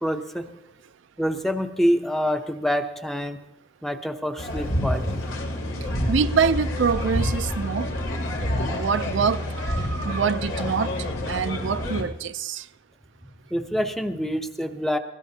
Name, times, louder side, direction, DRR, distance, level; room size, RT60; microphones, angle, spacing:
voice 1, 0.0-0.5 1.2-3.4 3.8-5.2 13.5-15.0, equal, ahead, 0.7 m, -26 dB
sound 1, 4.4-12.0, left 1 dB, 75° left, 2.7 m, -28 dB
voice 2, 6.1-7.9 8.7-10.9 11.3-12.7, right 6 dB, 65° right, 0.5 m, -25 dB
20.5 x 16.5 x 2.8 m
head